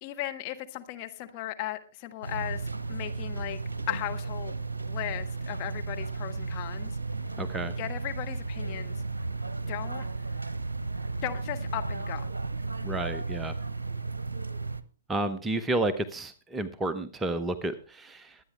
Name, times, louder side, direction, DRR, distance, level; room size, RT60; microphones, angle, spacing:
voice 1, 0.0-3.6 3.9-4.5 4.9-7.0 7.8-9.0 9.7-10.0 11.2-12.3, left 15 dB, 35° left, 5 dB, 1.4 m, -36 dB
sound 1, 2.2-14.8, right 3 dB, 75° right, 0.8 m, -34 dB
voice 2, 7.4-7.7 12.8-13.5 15.1-18.4, right 2 dB, 10° right, 11 dB, 0.8 m, -31 dB
22.5 x 9.1 x 3.3 m, 0.35 s
figure-of-eight pair, 115°, 0 cm